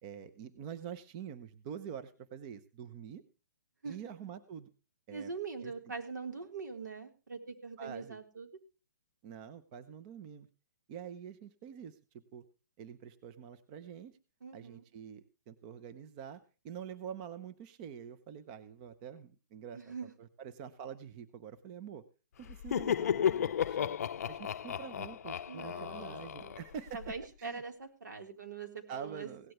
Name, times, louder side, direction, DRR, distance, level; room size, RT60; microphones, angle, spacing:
voice 1, 0.0-3.2 3.8-4.7 5.1-5.3 5.6-5.7 7.8-8.2 9.2-10.5 10.9-12.4 12.8-14.1 14.5-19.9 20.2-22.0 22.4-24.0 24.3-27.0 27.4-27.6 28.9-29.5, right 8 dB, 25° right, 11 dB, 0.8 m, -46 dB
voice 2, 5.1-8.5 14.4-14.8 19.7-20.1 25.5-26.6 26.9-29.5, right 5 dB, 85° right, 4 dB, 3.9 m, -43 dB
Laughter, 22.5-27.1, left 9 dB, 55° left, 0.5 m, -34 dB
17.5 x 12.0 x 3.2 m, 0.33 s
hypercardioid pair, 160°, 10 cm